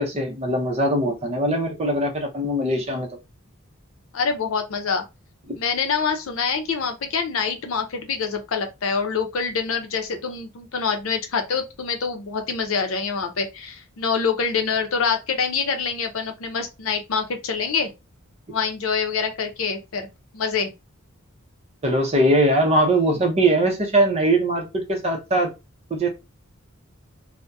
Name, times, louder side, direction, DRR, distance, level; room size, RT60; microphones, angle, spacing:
voice 1, 0.0-3.1 5.5-5.6 21.8-25.5 25.9-26.1, right 1 dB, 30° right, 0.6 m, -21 dB
voice 2, 4.1-5.0 5.6-17.9 18.5-20.1 20.3-20.7, left 5 dB, 75° left, 0.6 m, -25 dB
2.6 x 2.1 x 2.3 m
head